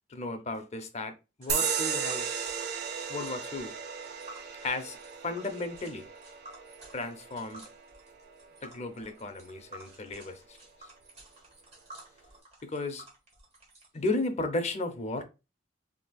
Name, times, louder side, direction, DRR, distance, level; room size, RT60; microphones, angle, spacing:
voice 1, 0.1-2.4 3.1-3.7 4.6-5.0 5.2-6.1 6.9-7.6 8.6-10.6 12.6-13.0 13.9-15.2, left 2 dB, 35° left, 0.6 m, -34 dB
Tick, 1.4-14.1, right 1 dB, 35° right, 1.5 m, -52 dB
sound 1, 1.5-8.6, right 6 dB, 60° right, 0.6 m, -35 dB
4.0 x 2.9 x 2.3 m
head